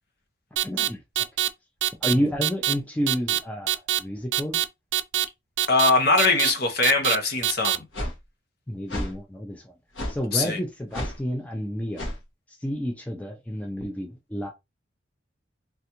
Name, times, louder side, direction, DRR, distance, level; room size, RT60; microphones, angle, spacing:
voice 1, 0.6-1.3 2.0-4.6 8.7-9.7 10.1-12.1 12.5-14.5, equal, 5° left, 0.4 m, -30 dB
sound 1, 0.6-0.9 1.2-1.5 1.8-2.1 2.4-2.7 3.1-3.4 3.7-4.0 4.3-4.6 4.9-5.2 5.6-5.9 6.2-6.5 6.8-7.2 7.4-7.8, right 13 dB, 85° right, 0.4 m, -23 dB
voice 2, 5.7-7.8 10.3-10.6, left 3 dB, 55° left, 0.8 m, -21 dB
sound 2, 7.9-8.1 8.9-9.1 9.9-10.2 10.9-11.2 12.0-12.2, left 1 dB, 90° left, 1.2 m, -30 dB
3.3 x 2.4 x 2.8 m
head